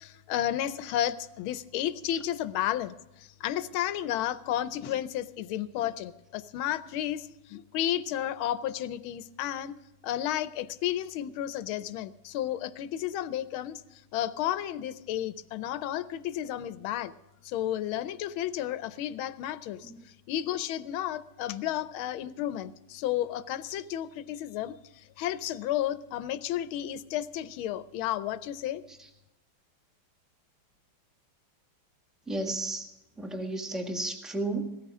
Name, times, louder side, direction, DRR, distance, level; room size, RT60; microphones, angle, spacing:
voice 1, 0.0-9.7 10.0-13.8 14.1-17.1 17.4-19.9 20.3-28.8, left 12 dB, 80° left, 14 dB, 1.5 m, -32 dB
voice 2, 32.3-32.9 33.2-34.8, right 2 dB, ahead, 3 dB, 1.3 m, -33 dB
17.5 x 14.0 x 3.6 m, 0.96 s
omnidirectional pair, 2.3 m